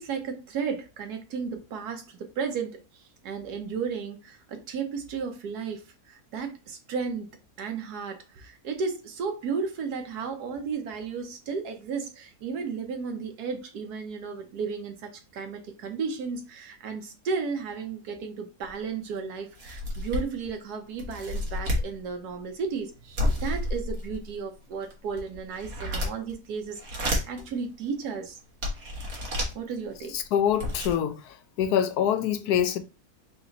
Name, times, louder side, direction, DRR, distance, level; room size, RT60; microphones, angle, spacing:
voice 1, 0.0-2.8 3.2-7.3 7.6-26.8 27.1-28.4 29.5-30.2, right 5 dB, 85° right, 1.4 m, -34 dB
sound 1, 18.7-18.8 19.2-19.3 19.6-20.5 21.0-21.9 23.2-24.3 24.8-26.3 26.7-27.4 28.0-28.1 28.6-29.5 30.2-30.3 30.5-30.9, left 1 dB, 65° right, 1.7 m, -30 dB
voice 2, 30.1-32.8, left 9 dB, 80° left, 1.1 m, -25 dB
3.9 x 3.0 x 3.9 m
omnidirectional pair, 1.6 m